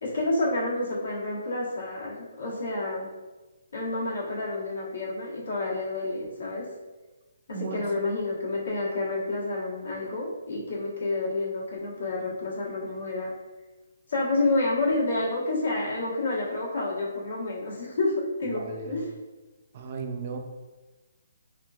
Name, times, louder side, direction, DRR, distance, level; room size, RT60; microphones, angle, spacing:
voice 1, 0.0-3.1 3.7-6.7 7.5-13.3 14.1-18.1 18.4-19.1, left 2 dB, 75° left, -4 dB, 1.1 m, -29 dB
voice 2, 7.6-7.9 18.4-19.0 19.7-20.4, right 5 dB, 40° right, 4 dB, 0.4 m, -35 dB
3.5 x 2.5 x 2.3 m, 1.2 s
hypercardioid pair, 155°, 0 cm